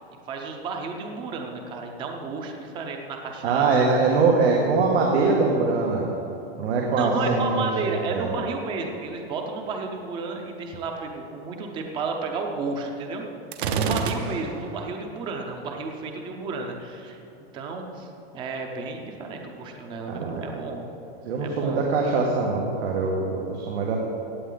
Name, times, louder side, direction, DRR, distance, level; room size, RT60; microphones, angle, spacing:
voice 1, 0.3-3.8 6.9-13.2 13.7-17.2 17.5-18.1 18.3-20.8 21.4-21.9, right 4 dB, 15° right, 3 dB, 0.7 m, -32 dB
voice 2, 3.4-6.1 6.6-7.7 8.1-8.4 13.6-14.0 20.1-20.4 21.2-24.0, right 4 dB, 90° right, -1 dB, 1.7 m, -23 dB
Gunshot gunfire, 13.5-14.8, right 5 dB, 55° right, 0.9 m, -30 dB
15.5 x 8.9 x 3.9 m, 3.0 s
supercardioid pair, 175°, 32 cm